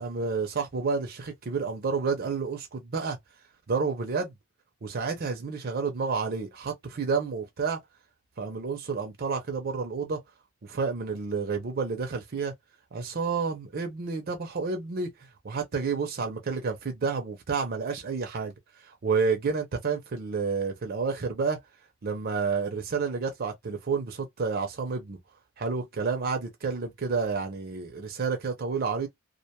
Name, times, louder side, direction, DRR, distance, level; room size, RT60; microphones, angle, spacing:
voice 1, 0.0-3.2 3.7-4.3 4.8-7.8 8.4-10.2 10.6-12.5 12.9-15.1 15.4-18.5 18.8-21.6 22.0-25.2 25.6-29.1, right 5 dB, 45° right, 0.5 m, -30 dB
2.4 x 2.2 x 2.8 m
head